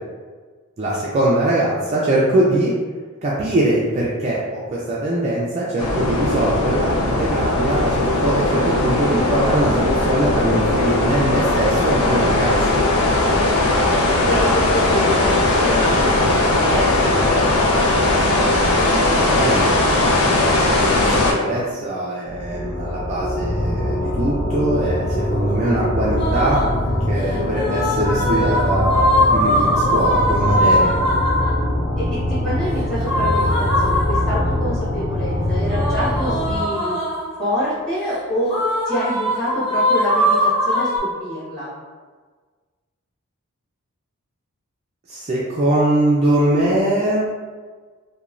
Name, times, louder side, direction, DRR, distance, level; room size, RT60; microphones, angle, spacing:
voice 1, 0.8-2.7 3.2-12.5 19.0-19.8 20.3-26.6 27.1-30.9 45.1-47.3, right 1 dB, 30° right, -6 dB, 0.3 m, -22 dB
sound 1, 5.8-21.3, left 2 dB, 90° left, 0.5 m, -18 dB
voice 2, 14.3-17.2 32.0-37.0 37.4-41.7, equal, 5° left, -11 dB, 1.1 m, -26 dB
sound 2, 22.2-36.6, left 1 dB, 30° left, 0.7 m, -23 dB
sound 3, 26.2-26.8 27.5-31.6 33.0-34.6 35.7-37.4 38.5-41.0, equal, 55° left, 1.1 m, -20 dB
3.0 x 2.1 x 2.4 m, 1.5 s
head